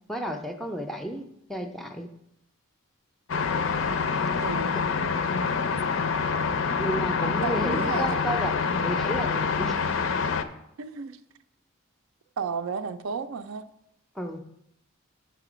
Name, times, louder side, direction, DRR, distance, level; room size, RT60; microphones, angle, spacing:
voice 1, 0.1-1.2 1.5-2.1 6.8-8.5 8.8-9.7 14.2-14.4, right 1 dB, ahead, 0.4 m, -32 dB
sound 1, 3.3-10.4, left 5 dB, 60° left, 0.5 m, -26 dB
voice 2, 4.4-4.9 7.4-8.2 10.8-11.2 12.4-13.7, right 5 dB, 65° right, 0.4 m, -33 dB
6.8 x 6.6 x 5.0 m
head